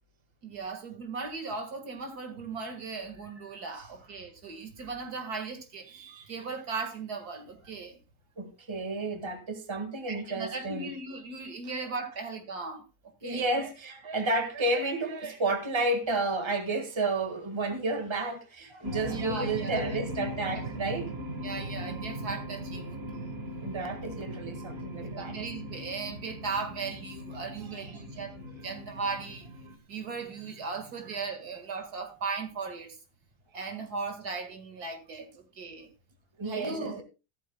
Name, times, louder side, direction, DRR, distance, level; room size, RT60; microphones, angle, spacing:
voice 1, 0.4-8.0 10.1-12.8 13.2-13.5 19.1-20.0 20.5-20.6 21.4-23.3 25.1-29.5 29.9-33.0 33.5-35.9 36.4-37.0, right 4 dB, 65° right, 2.3 m, -37 dB
voice 2, 8.4-10.9 13.2-21.1 23.6-25.4 36.4-37.0, right 2 dB, 15° right, 1.7 m, -31 dB
sound 1, 18.8-29.8, right 1 dB, 40° right, 1.6 m, -39 dB
15.0 x 13.0 x 2.2 m
omnidirectional pair, 1.8 m